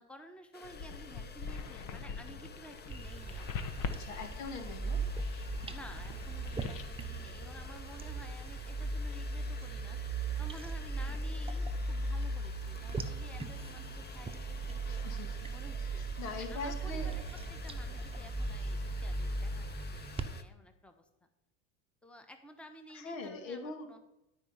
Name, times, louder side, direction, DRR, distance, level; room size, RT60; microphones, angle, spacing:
voice 1, 0.0-4.3 5.7-10.0 10.4-15.0 15.5-16.0 16.3-21.1 22.0-24.0, equal, 5° left, 6 dB, 1.2 m, -53 dB
sound 1, 0.5-20.4, left 5 dB, 25° left, 0.9 m, -52 dB
sound 2, 0.6-7.7, left 5 dB, 50° left, 1.3 m, -43 dB
sound 3, 2.9-20.2, right 2 dB, 15° right, 0.9 m, -38 dB
voice 2, 4.0-5.0 14.8-17.2 22.9-23.9, left 4 dB, 80° left, 5 dB, 1.9 m, -42 dB
12.5 x 5.1 x 5.7 m, 0.90 s
supercardioid pair, 90°, 39 cm